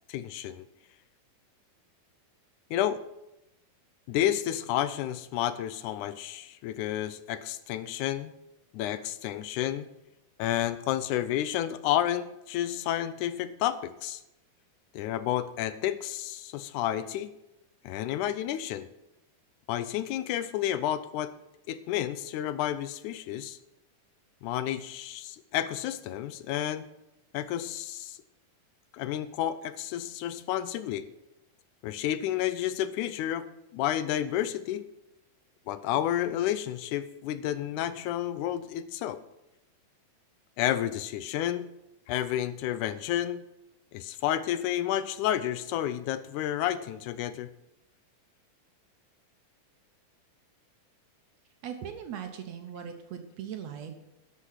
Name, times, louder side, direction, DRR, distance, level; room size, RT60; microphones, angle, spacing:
voice 1, 0.1-0.7 2.7-3.0 4.1-8.3 8.7-9.9 10.4-14.2 14.9-17.3 17.8-18.9 19.7-21.3 21.7-23.6 24.4-26.9 27.3-28.2 28.9-31.1 31.8-34.9 35.7-39.2 40.6-41.7 42.1-43.4 43.9-47.5, left 12 dB, 80° left, 13 dB, 2.0 m, -30 dB
voice 2, 51.6-53.9, right 8 dB, 70° right, 6 dB, 1.9 m, -39 dB
12.5 x 6.5 x 5.7 m, 0.91 s
omnidirectional pair, 3.7 m